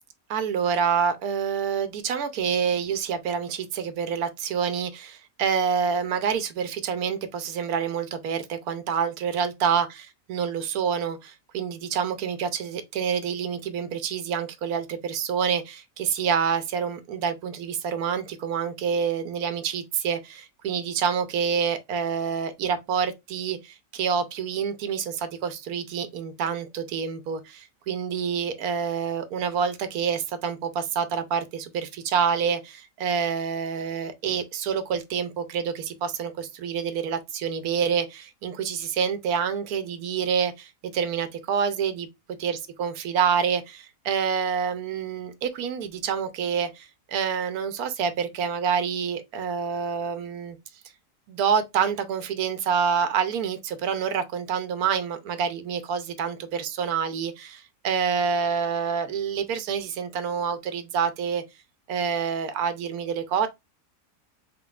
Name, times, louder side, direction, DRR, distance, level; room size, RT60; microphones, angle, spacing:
voice 1, 0.3-10.0 10.3-42.1 42.4-50.6 51.3-61.4 61.9-63.5, right 7 dB, 70° right, 1.0 m, -27 dB
3.9 x 3.7 x 2.3 m
omnidirectional pair, 1.8 m